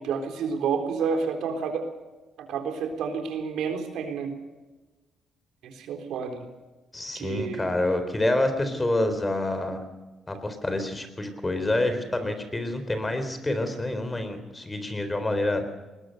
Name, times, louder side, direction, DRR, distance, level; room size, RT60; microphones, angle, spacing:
voice 1, 0.0-1.9 2.4-4.3 5.6-6.4 7.1-7.7, right 5 dB, 80° right, 6 dB, 3.8 m, -30 dB
voice 2, 6.9-9.8 10.3-15.6, left 1 dB, 20° left, 9 dB, 3.9 m, -27 dB
20.5 x 20.5 x 6.6 m, 1.2 s
cardioid pair, 90°, 0 cm